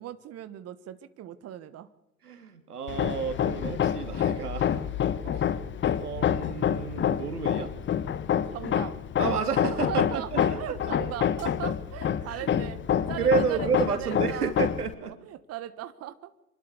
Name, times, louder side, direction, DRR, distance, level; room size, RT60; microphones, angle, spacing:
voice 1, 0.0-1.9 5.2-5.4 8.5-9.0 9.9-12.8 13.1-14.5 15.0-16.3, right 12 dB, 35° right, 12 dB, 1.4 m, -38 dB
voice 2, 2.2-4.8 5.3-5.4 6.0-7.7 9.2-10.7 12.2-12.5 12.9-15.1, right 6 dB, 90° right, 8 dB, 3.0 m, -30 dB
Hammer, 2.9-14.9, left 9 dB, 25° left, 1.1 m, -28 dB
26.5 x 12.0 x 8.3 m, 0.90 s
hypercardioid pair, 95°, 45 cm